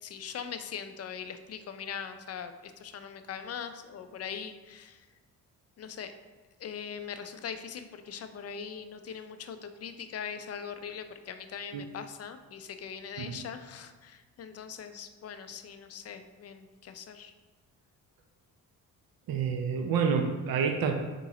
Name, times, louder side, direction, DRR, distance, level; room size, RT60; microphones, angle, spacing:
voice 1, 0.0-5.1 5.8-6.1 6.6-17.3, left 7 dB, 35° left, 9 dB, 0.4 m, -41 dB
voice 2, 19.3-20.9, right 6 dB, 55° right, 4 dB, 0.6 m, -28 dB
3.8 x 3.7 x 3.0 m, 1.3 s
hypercardioid pair, 45°, 43 cm